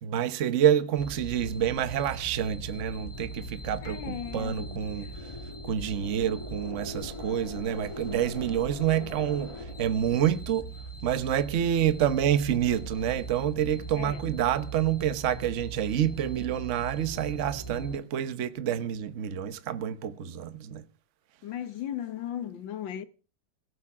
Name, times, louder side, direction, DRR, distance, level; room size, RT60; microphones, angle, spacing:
voice 1, 0.0-5.3 5.6-10.7 11.0-20.8, right 10 dB, 50° right, 1.1 m, -28 dB
sound 1, 1.0-18.0, right 2 dB, 15° left, 1.8 m, -40 dB
voice 2, 3.8-5.1 9.0-9.3 14.0-14.2 21.4-23.0, left 10 dB, 80° left, 1.8 m, -37 dB
18.0 x 7.2 x 7.2 m
omnidirectional pair, 2.0 m